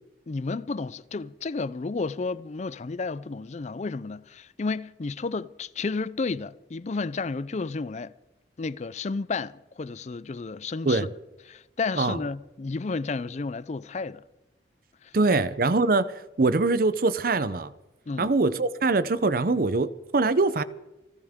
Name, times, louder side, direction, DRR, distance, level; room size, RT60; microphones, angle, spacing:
voice 1, 0.3-8.1 8.6-11.1 11.5-14.2 15.0-15.1 18.1-18.3, left 4 dB, 40° left, 0.4 m, -32 dB
voice 2, 15.1-16.1 16.4-17.7 18.2-20.6, right 3 dB, 50° right, 0.6 m, -23 dB
28.5 x 12.5 x 3.6 m
head